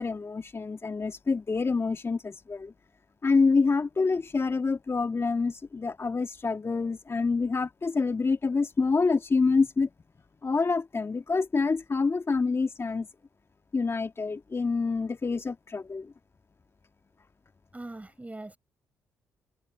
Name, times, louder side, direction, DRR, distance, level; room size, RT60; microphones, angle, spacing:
voice 1, 0.0-2.7 3.2-9.9 10.4-13.1 13.7-16.1, left 4 dB, 35° left, 2.5 m, -27 dB
voice 2, 17.7-18.6, right 2 dB, 20° right, 6.1 m, -41 dB
hypercardioid pair, 45°, 8 cm